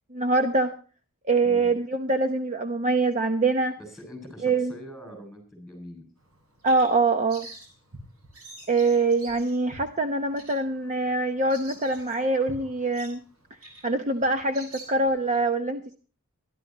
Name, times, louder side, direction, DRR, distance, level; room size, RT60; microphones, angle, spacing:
voice 1, 0.1-0.7 1.3-3.8 4.4-4.7 6.6-7.5 8.7-13.2 13.8-16.0, right 3 dB, 35° right, 6 dB, 0.9 m, -24 dB
voice 2, 3.8-6.1, equal, ahead, 6 dB, 7.0 m, -43 dB
Bird vocalization bird call bird song, 6.2-15.4, right 2 dB, 80° right, 7.2 m, -47 dB
24.0 x 12.0 x 3.0 m, 0.37 s
head